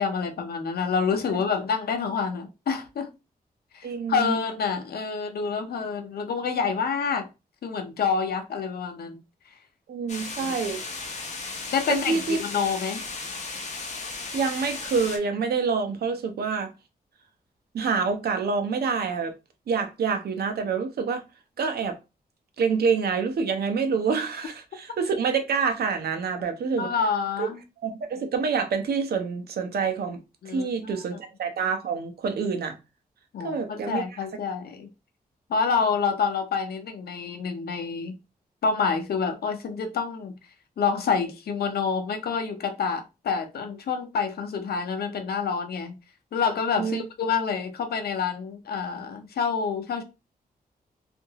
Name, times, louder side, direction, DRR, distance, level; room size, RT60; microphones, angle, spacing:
voice 1, 0.0-3.1 3.7-7.3 7.6-9.2 10.4-10.5 11.7-13.0 26.8-27.6 30.4-30.9 33.3-34.9 35.5-38.1 38.6-40.3 40.8-46.0 46.3-50.0, left 5 dB, 80° left, 0.6 m, -27 dB
voice 2, 3.8-4.4 9.9-10.8 11.9-12.4 14.3-16.7 17.7-19.3 19.7-21.2 21.6-22.0 22.6-26.9 27.4-27.5 27.8-30.2 30.5-32.8 33.4-34.0 46.8-47.0, right 5 dB, 85° right, 0.6 m, -27 dB
sound 1, 10.1-15.2, left 3 dB, 45° left, 0.7 m, -35 dB
2.7 x 2.5 x 2.8 m
wide cardioid pair, 135°, 16 cm